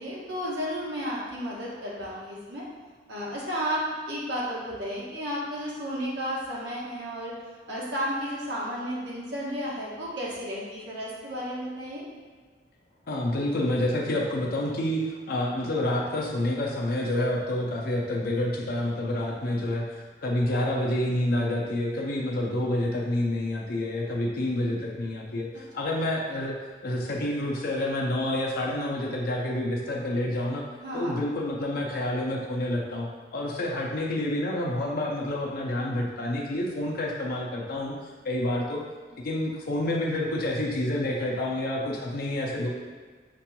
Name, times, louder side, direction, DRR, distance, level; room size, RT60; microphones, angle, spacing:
voice 1, 0.0-2.6 3.1-7.3 7.7-12.0 30.8-31.1, equal, 70° right, -6 dB, 1.1 m, -33 dB
voice 2, 13.1-26.6 26.8-30.6 30.9-37.9 38.2-38.8 39.2-42.7, left 1 dB, 50° left, -2 dB, 0.5 m, -28 dB
5.9 x 2.9 x 2.2 m, 1.5 s
head